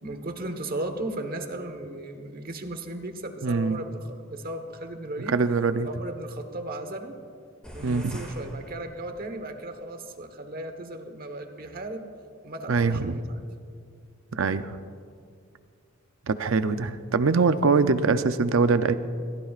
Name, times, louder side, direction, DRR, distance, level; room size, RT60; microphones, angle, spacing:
voice 1, 0.0-5.4 5.8-7.2 7.7-12.1 12.4-13.4, right 1 dB, 45° right, 6 dB, 1.3 m, -36 dB
voice 2, 3.4-3.8 5.3-5.9 7.8-8.2 12.7-13.2 14.3-14.8 16.3-18.9, right 4 dB, 80° right, 10 dB, 0.6 m, -23 dB
sound 1, 7.6-9.5, equal, 5° left, 2.1 m, -44 dB
28.0 x 14.5 x 2.5 m, 2.3 s
head